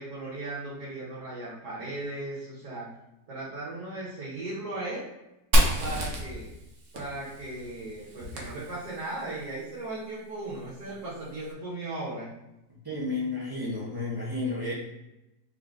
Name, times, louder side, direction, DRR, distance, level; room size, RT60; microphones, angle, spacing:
voice 1, 0.0-2.9 3.3-5.0 5.8-6.5 6.9-12.3, right 2 dB, 70° right, -8 dB, 1.7 m, -37 dB
Fire, 5.5-9.2, equal, 55° right, 1.0 m, -28 dB
voice 2, 12.8-14.7, left 2 dB, 20° right, -6 dB, 0.7 m, -31 dB
4.2 x 3.7 x 2.5 m, 0.92 s
omnidirectional pair, 1.8 m